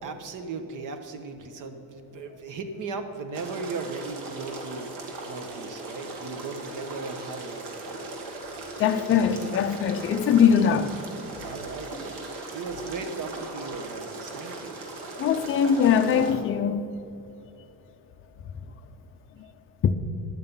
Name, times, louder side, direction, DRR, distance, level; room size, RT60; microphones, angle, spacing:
voice 1, 0.0-4.9 5.3-8.0 11.4-14.8, right 4 dB, 50° right, 1.1 m, -37 dB
sound 1, 3.3-16.3, right 2 dB, 85° right, 2.1 m, -38 dB
voice 2, 8.8-11.0 15.2-16.9 19.8-19.9, left 7 dB, 35° left, 0.5 m, -21 dB
11.5 x 9.1 x 5.4 m
cardioid pair, 145°, 39 cm